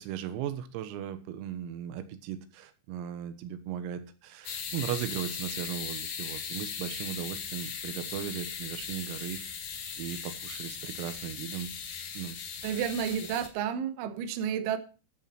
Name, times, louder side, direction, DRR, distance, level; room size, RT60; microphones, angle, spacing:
voice 1, 0.0-9.4 10.0-11.7 12.2-12.4 12.6-12.7, right 10 dB, 90° right, 10 dB, 3.9 m, -37 dB
sound 1, 4.4-13.5, left 7 dB, 60° left, 2.0 m, -38 dB
voice 2, 12.6-14.8, right 8 dB, 75° right, 9 dB, 3.4 m, -31 dB
11.0 x 9.4 x 4.4 m, 0.34 s
omnidirectional pair, 6.0 m